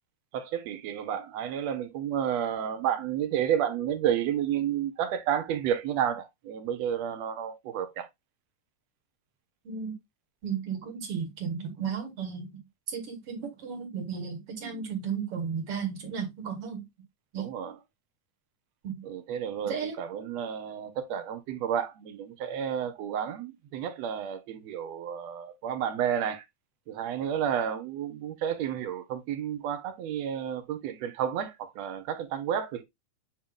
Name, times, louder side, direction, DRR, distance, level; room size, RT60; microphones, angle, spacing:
voice 1, 0.3-8.1 14.6-14.9 17.4-17.8 19.0-26.4 26.9-32.8, right 9 dB, 70° right, 2.0 m, -31 dB
voice 2, 10.4-12.6 12.9-16.9 17.3-17.5 18.8-19.0 19.6-20.0, right 6 dB, 50° right, 2.5 m, -34 dB
8.8 x 3.0 x 3.7 m
omnidirectional pair, 3.4 m